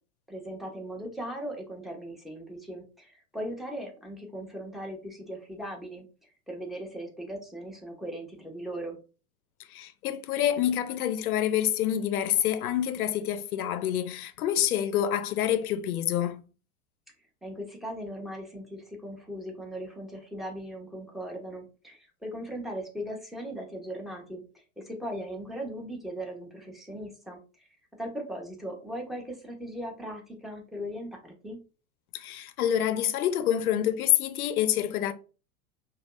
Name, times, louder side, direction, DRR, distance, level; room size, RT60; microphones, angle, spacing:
voice 1, 0.3-6.1 6.5-9.0 17.4-27.6 28.0-31.6, equal, ahead, 1.0 m, -38 dB
voice 2, 9.7-16.4 32.1-35.1, left 11 dB, 80° left, 0.6 m, -27 dB
4.9 x 2.4 x 2.5 m
hypercardioid pair, 95°, 43 cm